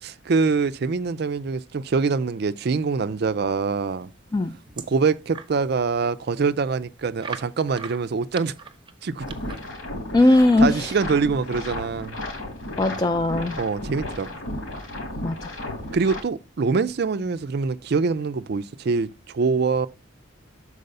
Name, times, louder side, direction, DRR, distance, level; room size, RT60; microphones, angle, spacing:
voice 1, 0.0-4.1 4.9-8.6 9.0-9.3 10.6-12.2 13.6-14.3 15.9-19.9, right 4 dB, 50° right, 0.4 m, -24 dB
sound 1, 4.0-5.6 6.0-6.1 6.4-6.5 7.2-9.7, right 5 dB, 25° right, 0.8 m, -40 dB
sound 2, 9.2-16.2, left 1 dB, 80° left, 2.6 m, -34 dB
voice 2, 10.1-10.9 12.8-13.6 15.2-15.5, left 2 dB, 20° left, 0.3 m, -19 dB
6.5 x 4.8 x 6.7 m
head